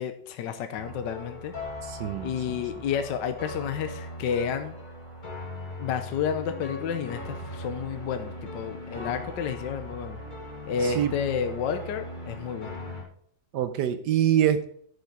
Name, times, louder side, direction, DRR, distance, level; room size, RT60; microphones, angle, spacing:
voice 1, 0.0-1.5 2.2-4.7 5.8-10.2 10.6-12.8, left 7 dB, 65° left, 8 dB, 1.4 m, -31 dB
sound 1, 0.8-13.0, left 1 dB, 25° left, 2.1 m, -39 dB
voice 2, 1.8-2.3 10.8-11.1 13.5-14.7, right 10 dB, 70° right, 11 dB, 1.1 m, -24 dB
9.7 x 6.6 x 4.5 m, 0.63 s
omnidirectional pair, 2.2 m